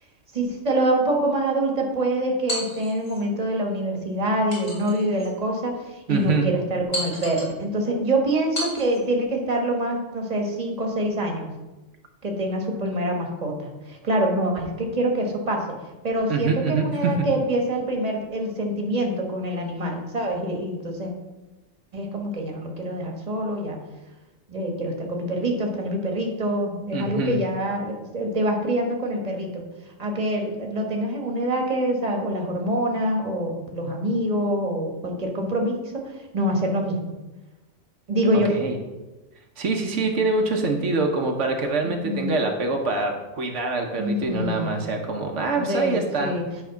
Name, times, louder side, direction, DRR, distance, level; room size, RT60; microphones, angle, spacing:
voice 1, 0.3-11.5 12.2-15.7 16.0-21.1 21.9-23.8 24.5-29.6 30.0-37.1 38.1-38.5 41.8-42.3 44.0-44.9 45.5-46.4, right 1 dB, 35° right, 2 dB, 1.3 m, -25 dB
sound 1, 2.5-3.2 4.5-5.3 5.9-6.0 6.9-7.6 8.5-9.0, left 1 dB, 40° left, 2.7 m, -33 dB
voice 2, 6.1-6.5 16.3-17.1 26.9-27.4 38.5-38.8 39.6-46.3, right 3 dB, 85° right, 3 dB, 1.2 m, -25 dB
9.5 x 3.5 x 5.7 m, 1.1 s
omnidirectional pair, 1.2 m